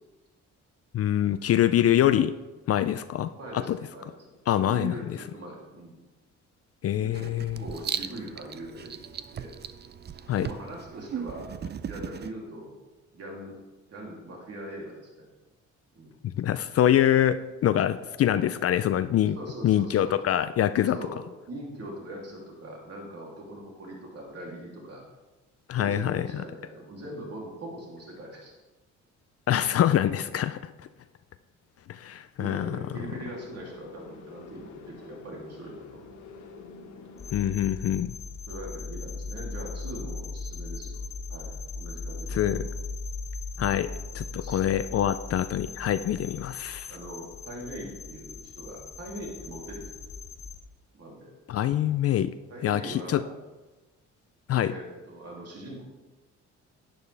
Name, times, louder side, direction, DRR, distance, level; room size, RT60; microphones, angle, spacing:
voice 1, 0.9-2.3 2.7-3.3 3.7-3.8 4.5-4.9 6.8-7.6 10.3-10.5 16.4-19.4 19.6-21.0 25.7-26.3 29.5-30.6 31.9-32.8 37.3-38.1 42.3-42.6 43.6-46.9 51.5-52.3 52.6-53.2 54.5-54.7, left 11 dB, 50° left, 12 dB, 0.4 m, -24 dB
voice 2, 3.3-4.3 4.7-6.0 7.0-7.3 7.6-9.0 9.3-9.8 10.4-11.5 11.9-12.7 13.1-13.6 13.9-15.3 15.9-16.1 19.3-20.2 20.8-25.0 25.8-28.5 32.4-36.0 38.5-41.0 41.3-42.7 44.1-44.9 46.2-46.4 46.9-49.9 50.9-51.3 52.5-53.3 54.6-55.8, right 1 dB, 55° right, -2 dB, 2.9 m, -41 dB
Writing, 7.1-12.3, right 8 dB, 35° right, 0.5 m, -37 dB
sound 1, 32.5-37.5, left 4 dB, 70° left, 1.4 m, -47 dB
sound 2, 37.2-50.6, left 3 dB, 35° left, 0.8 m, -38 dB
11.0 x 9.5 x 3.4 m, 1.2 s
cardioid pair, 90°, 30 cm